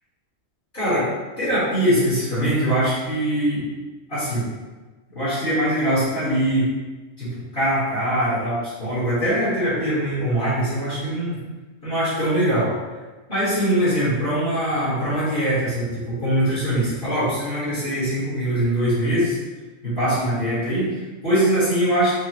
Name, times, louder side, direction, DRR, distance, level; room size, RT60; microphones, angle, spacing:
voice 1, 0.7-1.1 1.4-3.7 4.1-4.4 5.1-6.7 7.2-11.4 11.8-12.7 13.3-19.4 19.8-22.1, right 1 dB, 35° left, -11 dB, 1.6 m, -22 dB
4.9 x 2.4 x 2.9 m, 1.2 s
omnidirectional pair, 1.6 m